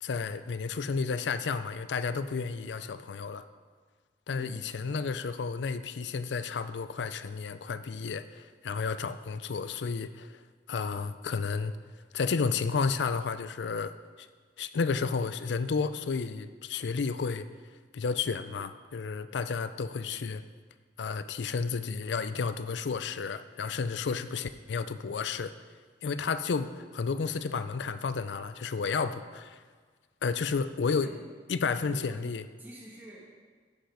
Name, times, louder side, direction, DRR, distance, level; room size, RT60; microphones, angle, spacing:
voice 1, 0.0-3.5 4.3-10.4 10.7-11.7 12.1-14.3 14.6-17.5 17.9-20.4 21.0-25.5 26.0-29.6 30.2-31.1 31.5-32.5, left 5 dB, 85° left, 12 dB, 0.5 m, -32 dB
voice 2, 4.3-5.1 30.9-31.2 31.8-32.2 32.6-33.3, right 2 dB, 10° right, -6 dB, 1.6 m, -48 dB
11.5 x 5.4 x 5.0 m, 1.5 s
head